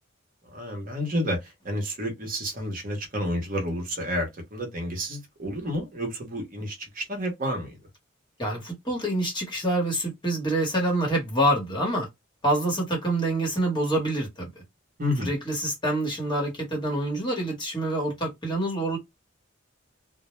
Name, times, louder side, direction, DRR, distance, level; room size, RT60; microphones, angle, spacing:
voice 1, 0.4-7.7 15.0-15.4, equal, 45° right, 0.7 m, -30 dB
voice 2, 8.4-12.1 12.4-14.6 15.2-19.0, right 1 dB, 20° left, 1.0 m, -26 dB
2.0 x 2.0 x 3.0 m
head